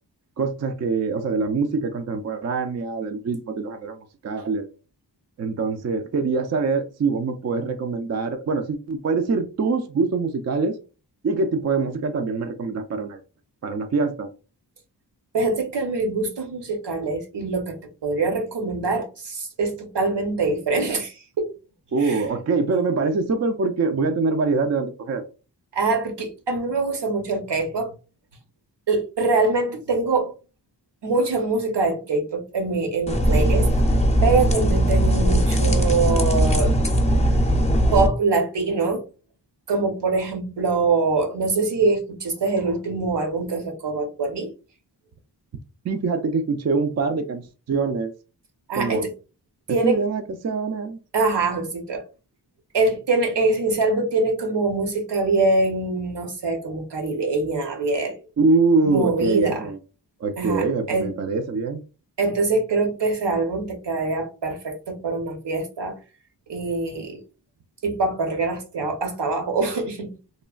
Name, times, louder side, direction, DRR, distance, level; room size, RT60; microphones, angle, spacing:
voice 1, 0.4-4.0 4.2-4.7 5.4-10.8 11.2-13.2 13.6-14.3 21.9-25.2 45.8-48.1 48.8-49.1 49.7-51.0 58.4-59.8 60.2-61.8, right 4 dB, 40° right, 0.4 m, -24 dB
voice 2, 15.3-17.8 18.0-21.5 22.0-22.2 25.7-27.9 28.9-30.3 31.0-33.7 34.2-36.8 37.9-39.0 39.7-44.5 48.7-49.1 49.7-50.0 51.1-52.0 52.7-58.2 58.8-59.7 60.4-61.1 62.2-66.0 66.5-67.2 67.8-70.1, right 3 dB, 75° right, 0.9 m, -24 dB
sound 1, 33.1-38.1, equal, 15° left, 0.5 m, -19 dB
3.1 x 2.2 x 2.3 m
wide cardioid pair, 70°, 42 cm